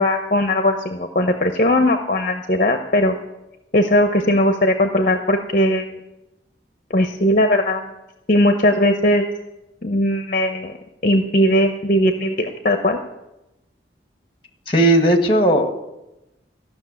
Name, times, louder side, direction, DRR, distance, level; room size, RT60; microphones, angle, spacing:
voice 1, 0.0-3.1 3.7-5.9 6.9-7.9 8.3-9.3 9.8-10.7 11.0-13.0, left 1 dB, 45° left, 5 dB, 0.8 m, -18 dB
voice 2, 14.7-15.7, right 1 dB, 30° left, 5 dB, 1.5 m, -16 dB
15.0 x 6.4 x 9.6 m, 0.95 s
head